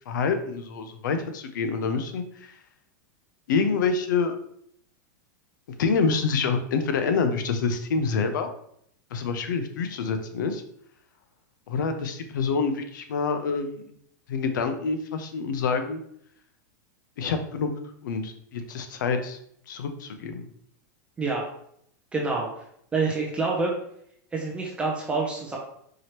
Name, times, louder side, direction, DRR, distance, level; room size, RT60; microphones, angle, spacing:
voice 1, 0.1-2.5 3.5-4.4 5.8-8.5 9.1-10.6 11.7-13.7 14.3-16.0 17.2-17.7 18.0-19.4 19.7-20.5, left 5 dB, 85° left, 8 dB, 0.6 m, -27 dB
voice 2, 22.1-22.6 22.9-23.7 24.3-25.6, right 3 dB, 10° right, -2 dB, 0.6 m, -27 dB
4.8 x 2.9 x 2.9 m, 0.69 s
supercardioid pair, 150°, 10 cm